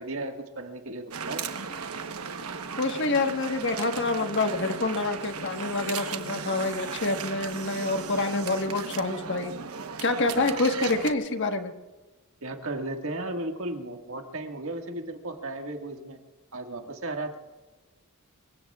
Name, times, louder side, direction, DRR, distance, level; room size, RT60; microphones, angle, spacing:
voice 1, 0.0-1.4 12.4-16.2 16.5-17.4, right 2 dB, 65° right, 4 dB, 1.8 m, -35 dB
sound 1, 1.1-11.1, right 5 dB, 90° right, 1.1 m, -36 dB
voice 2, 2.8-9.6 10.0-11.7, left 3 dB, 55° left, 6 dB, 1.4 m, -27 dB
25.5 x 23.5 x 2.4 m, 1.2 s
head